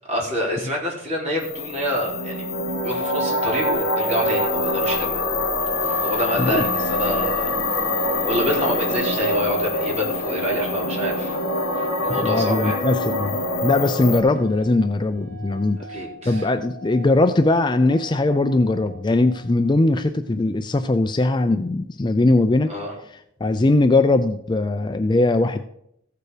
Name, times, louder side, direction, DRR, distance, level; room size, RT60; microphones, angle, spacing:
voice 1, 0.1-2.5 2.8-5.3 5.6-7.6 8.2-11.4 11.7-12.8 15.9-16.5 22.7-22.9, equal, 35° right, -3 dB, 3.9 m, -27 dB
sound 1, 1.4-14.2, left 1 dB, 70° left, 2.1 m, -24 dB
sound 2, 2.7-19.9, right 3 dB, 35° left, 1.8 m, -42 dB
sound 3, 5.8-19.7, left 4 dB, 65° right, 3.3 m, -45 dB
voice 2, 12.1-15.8 16.3-22.7 23.4-25.6, left 2 dB, 20° left, 8 dB, 0.4 m, -20 dB
15.0 x 6.8 x 5.0 m, 0.74 s
head